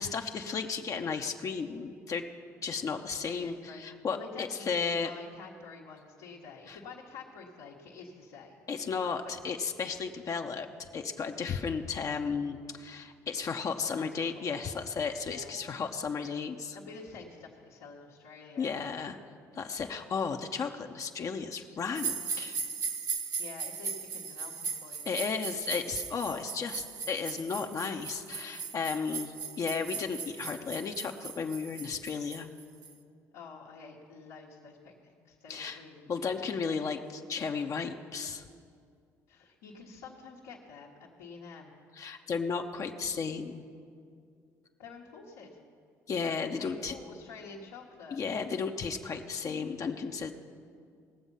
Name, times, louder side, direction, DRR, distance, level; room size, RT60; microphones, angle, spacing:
voice 1, 0.0-2.2 2.6-5.1 6.7-6.8 8.7-16.8 18.6-19.2 19.5-22.6 25.1-32.5 35.5-35.8 36.1-38.4 42.0-43.6 46.1-46.9 48.1-50.3, left 5 dB, 45° left, 4 dB, 0.8 m, -34 dB
voice 2, 3.2-8.6 9.2-9.3 13.8-14.6 15.3-15.5 16.7-18.7 23.4-25.0 33.3-36.6 39.3-41.7 44.8-45.6 46.6-48.2, left 4 dB, 85° left, -5 dB, 1.5 m, -48 dB
sound 1, 21.9-32.9, right 6 dB, 50° right, 1.2 m, -38 dB
19.5 x 7.1 x 5.6 m, 2.3 s
hypercardioid pair, 65°, 8 cm